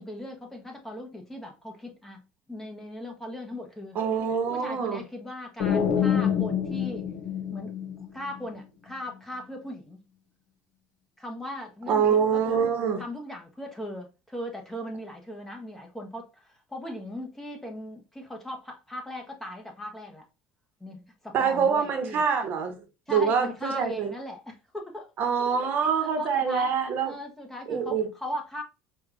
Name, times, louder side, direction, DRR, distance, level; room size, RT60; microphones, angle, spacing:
voice 1, 0.0-4.0 4.5-7.1 7.5-10.0 11.2-12.7 13.0-20.3 20.8-22.2 23.1-25.3 26.0-26.7 27.0-28.6, equal, 5° left, 0.8 m, -38 dB
voice 2, 3.9-5.0 11.9-13.0 21.3-22.8 23.1-24.1 25.2-27.1 27.7-28.1, right 6 dB, 50° right, 0.9 m, -25 dB
sound 1, 5.6-8.4, left 8 dB, 70° left, 0.9 m, -26 dB
4.6 x 2.3 x 2.4 m
cardioid pair, 120°, 4 cm